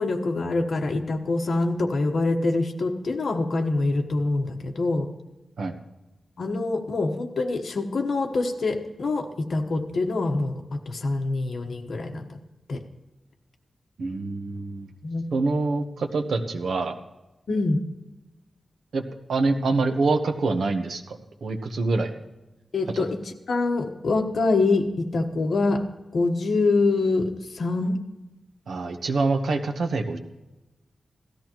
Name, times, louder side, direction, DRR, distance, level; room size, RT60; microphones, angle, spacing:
voice 1, 0.0-5.1 6.4-12.4 12.7-12.8 15.0-15.2 17.5-17.8 22.7-25.9 26.1-28.0, left 3 dB, 60° left, 4 dB, 1.2 m, -25 dB
voice 2, 14.0-14.9 15.3-16.9 18.9-19.0 19.3-22.2 22.9-23.0 28.7-30.2, right 3 dB, 80° right, 6 dB, 1.0 m, -25 dB
17.0 x 13.5 x 3.0 m, 1.0 s
wide cardioid pair, 165°, 0 cm